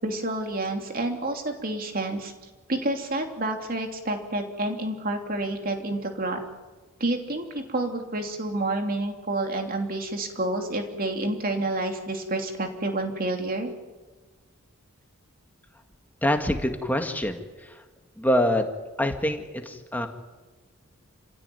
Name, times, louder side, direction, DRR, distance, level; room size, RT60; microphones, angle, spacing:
voice 1, 0.0-2.3 2.7-6.4 7.0-13.7, right 2 dB, 45° right, 4 dB, 3.1 m, -29 dB
voice 2, 16.2-17.4 18.2-18.7 19.0-20.1, left 1 dB, 10° left, 5 dB, 1.9 m, -25 dB
28.5 x 16.5 x 9.3 m, 1.3 s
head